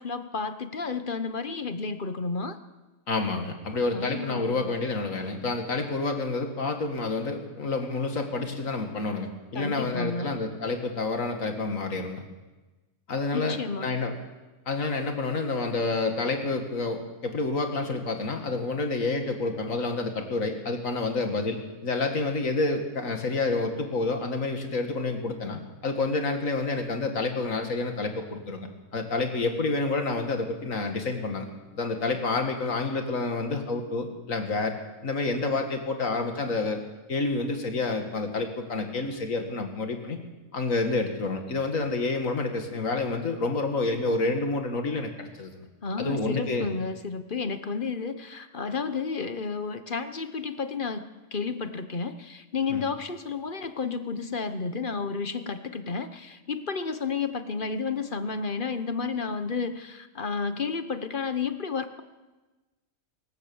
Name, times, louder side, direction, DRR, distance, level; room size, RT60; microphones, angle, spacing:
voice 1, 0.0-2.6 3.9-4.7 9.5-10.3 13.3-13.9 45.8-62.0, left 5 dB, 40° left, 10 dB, 1.1 m, -31 dB
voice 2, 3.1-12.2 13.1-14.1 14.7-31.5 31.7-34.8 35.0-36.8 37.1-40.2 40.5-45.5 46.0-46.7 52.7-52.8, left 3 dB, 70° left, 5 dB, 2.5 m, -29 dB
24.0 x 15.0 x 7.2 m, 1.2 s
omnidirectional pair, 1.4 m